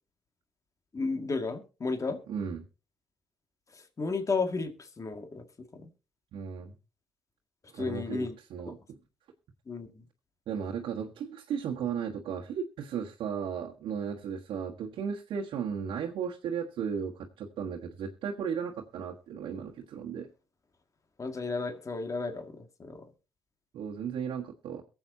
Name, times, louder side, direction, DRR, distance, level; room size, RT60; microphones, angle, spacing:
voice 1, 0.9-2.2 3.7-5.4 5.7-5.9 7.7-8.4 8.7-8.8 9.7-10.0 21.2-23.0, left 4 dB, 40° left, 2.0 m, -33 dB
voice 2, 2.3-2.6 6.3-6.7 7.7-8.8 10.5-20.3 23.7-24.8, right 7 dB, 75° right, 1.4 m, -35 dB
22.5 x 7.9 x 2.7 m
supercardioid pair, 50°, 8 cm